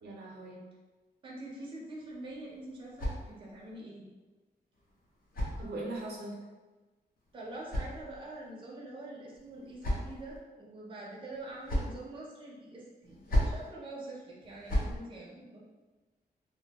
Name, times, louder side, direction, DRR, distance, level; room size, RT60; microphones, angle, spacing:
voice 1, 0.0-0.6 5.6-6.4, right 2 dB, 80° right, -2 dB, 0.6 m, -40 dB
voice 2, 1.2-4.1 7.3-15.6, right 2 dB, 30° right, -5 dB, 0.5 m, -45 dB
sound 1, 2.1-3.7 4.7-6.2 7.2-8.5 9.3-10.4 11.3-12.0 13.0-13.7 14.4-15.0, equal, 60° left, 0.6 m, -35 dB
2.2 x 2.2 x 2.8 m, 1.2 s
wide cardioid pair, 180°, 17 cm